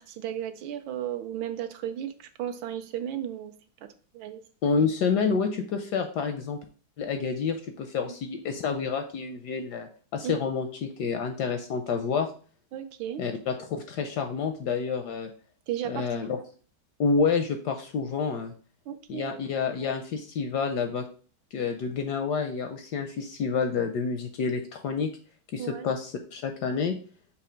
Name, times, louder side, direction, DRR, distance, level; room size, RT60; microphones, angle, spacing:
voice 1, 0.0-3.5 3.8-4.4 10.2-10.4 12.7-13.2 15.7-16.3 18.9-19.4 25.6-25.9, right 10 dB, 75° right, 7 dB, 1.3 m, -35 dB
voice 2, 4.6-6.6 7.0-12.3 13.2-15.3 15.9-16.4 17.0-18.5 19.1-21.0 21.5-25.1 25.5-27.0, left 5 dB, 75° left, 6 dB, 1.0 m, -28 dB
6.6 x 2.9 x 5.0 m, 0.41 s
omnidirectional pair, 2.2 m